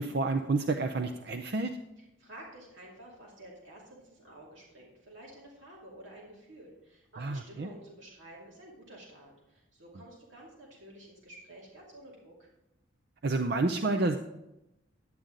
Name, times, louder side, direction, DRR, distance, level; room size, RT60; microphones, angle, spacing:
voice 1, 0.0-1.7 7.2-7.7 13.2-14.2, right 3 dB, 55° right, 6 dB, 0.5 m, -29 dB
voice 2, 2.0-12.5, right 1 dB, 70° right, -3 dB, 2.5 m, -51 dB
11.0 x 8.9 x 3.8 m, 0.91 s
head